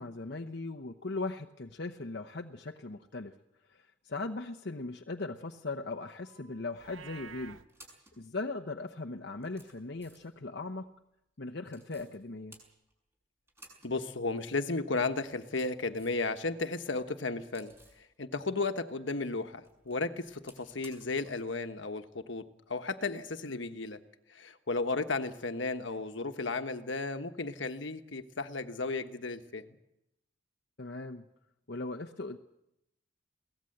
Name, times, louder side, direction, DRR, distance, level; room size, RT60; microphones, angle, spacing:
voice 1, 0.0-3.3 3.7-7.6 8.2-10.9 11.4-12.6 23.5-23.6 30.8-31.2 31.7-32.4, left 3 dB, 55° left, 3 dB, 0.9 m, -39 dB
sound 1, 6.2-6.8 7.5-8.2 8.9-9.0 9.4-10.4 11.7-12.2 12.5-13.1 13.5-14.0 14.2-14.3 15.2-16.3 16.6-18.1 19.5-21.4 21.7-21.8 23.5-23.7, right 1 dB, 15° right, 6.1 m, -58 dB
Livestock farm animals working animals, 6.7-7.6, right 6 dB, 85° right, 0.9 m, -48 dB
voice 2, 13.8-22.4 22.7-24.0 24.3-29.6, left 3 dB, 70° left, 8 dB, 1.3 m, -34 dB
23.0 x 17.5 x 7.9 m, 0.83 s
head